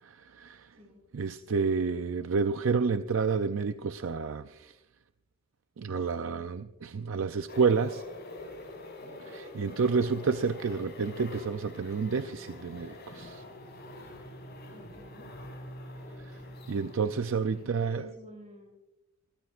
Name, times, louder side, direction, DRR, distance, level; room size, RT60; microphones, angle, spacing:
voice 1, 0.0-0.8 1.1-4.8 5.8-8.0 9.2-13.4 16.2-16.4 16.7-18.0, right 5 dB, 60° right, 10 dB, 0.4 m, -30 dB
sound 1, 7.5-17.7, left 1 dB, 45° left, 6.0 m, -45 dB
voice 2, 14.7-15.3 17.6-18.7, equal, 30° right, 0 dB, 7.3 m, -50 dB
29.0 x 14.0 x 2.4 m, 0.92 s
head